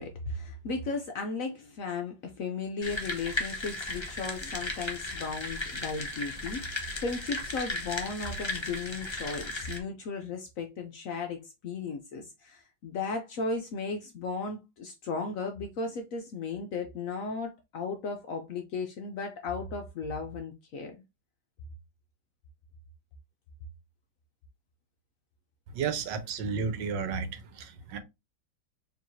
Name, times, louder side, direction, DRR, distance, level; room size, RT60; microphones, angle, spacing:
voice 1, 0.0-21.0, left 4 dB, 65° left, 0.8 m, -35 dB
sound 1, 2.8-9.8, left 2 dB, 30° left, 0.4 m, -36 dB
voice 2, 25.7-28.0, right 5 dB, 85° right, 1.4 m, -32 dB
4.5 x 3.2 x 2.6 m
omnidirectional pair, 1.9 m